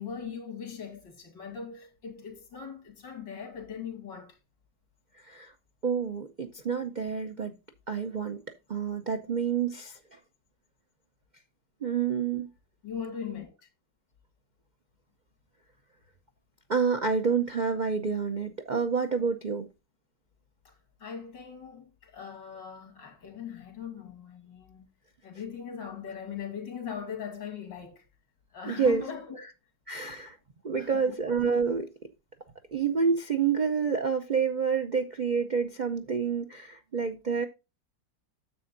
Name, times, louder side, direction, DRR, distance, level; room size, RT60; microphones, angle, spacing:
voice 1, 0.0-4.4 12.8-13.5 20.6-20.7 21.0-24.9 25.2-28.0 28.5-29.4 30.7-31.1, left 7 dB, 90° left, 3.0 m, -40 dB
voice 2, 5.8-7.5 7.9-8.4 8.7-10.2 11.8-12.5 16.7-19.7 28.7-29.0 29.9-30.4 30.6-31.9 32.7-37.4, right 6 dB, 75° right, 0.4 m, -28 dB
10.5 x 7.4 x 2.6 m
omnidirectional pair, 1.9 m